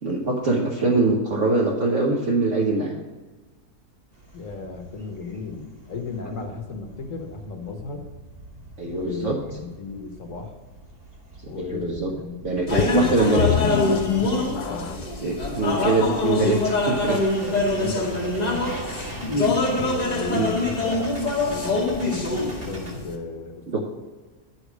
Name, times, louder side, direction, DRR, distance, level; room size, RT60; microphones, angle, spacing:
voice 1, 0.0-3.0 8.8-9.4 11.6-12.1 12.4-13.5 15.2-17.2 20.2-20.5 23.7-23.8, right 3 dB, 50° right, -2 dB, 1.4 m, -23 dB
sound 1, 4.1-22.9, right 1 dB, 35° right, 2.3 m, -42 dB
voice 2, 4.3-8.1 8.8-10.6 11.5-13.6 13.9-14.9 17.4-18.8 19.7-23.8, left 4 dB, 55° left, 4 dB, 1.5 m, -35 dB
sound 2, 12.7-23.1, left 2 dB, 30° left, 1.1 m, -24 dB
sound 3, 12.8-15.2 15.9-16.0 16.6-16.7, left 10 dB, 90° left, 0.5 m, -27 dB
10.5 x 5.0 x 6.1 m, 1.3 s
omnidirectional pair, 1.7 m